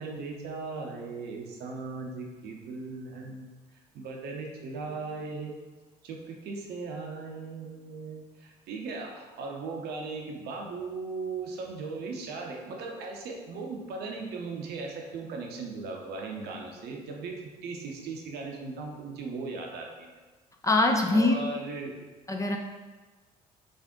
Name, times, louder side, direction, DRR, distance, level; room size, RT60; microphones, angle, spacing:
voice 1, 0.0-3.5 3.9-5.6 6.0-20.1 21.1-22.0, right 4 dB, 55° right, 0 dB, 0.8 m, -38 dB
voice 2, 20.6-21.4 22.3-22.6, left 2 dB, 15° left, 2 dB, 0.5 m, -23 dB
5.1 x 2.5 x 3.7 m, 1.3 s
figure-of-eight pair, 50°, 20 cm